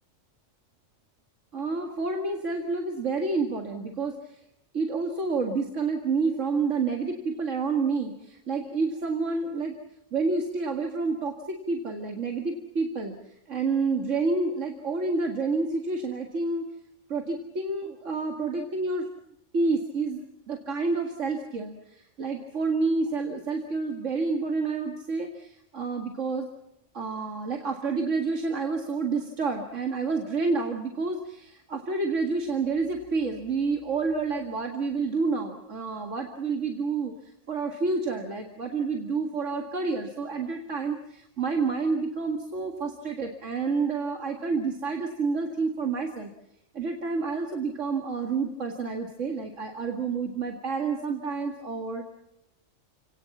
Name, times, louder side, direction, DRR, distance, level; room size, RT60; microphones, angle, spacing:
voice 1, 1.5-4.4 4.7-9.8 10.1-16.7 17.1-19.1 19.5-26.5 26.9-46.3 46.7-52.1, right 4 dB, 85° right, 3 dB, 2.4 m, -29 dB
29.5 x 19.0 x 7.2 m, 0.83 s
omnidirectional pair, 1.2 m